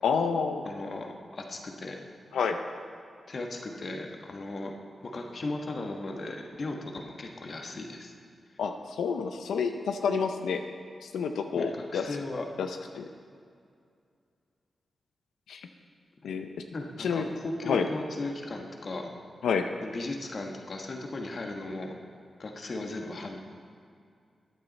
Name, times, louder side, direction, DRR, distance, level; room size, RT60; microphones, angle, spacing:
voice 1, 0.0-0.7 2.3-2.6 8.6-10.6 11.0-12.0 12.6-12.7 12.9-13.1 15.5-15.6 16.2-16.5 17.0-17.3 17.7-17.9 19.4-19.7, left 6 dB, 90° left, 6 dB, 0.5 m, -28 dB
voice 2, 0.6-2.0 3.3-4.7 5.0-8.1 11.5-12.5 16.2-16.3 16.7-19.1 19.8-21.9 22.4-23.4, left 2 dB, 60° left, 2 dB, 1.3 m, -37 dB
13.5 x 8.9 x 4.1 m, 2.3 s
cardioid pair, 45°, 0 cm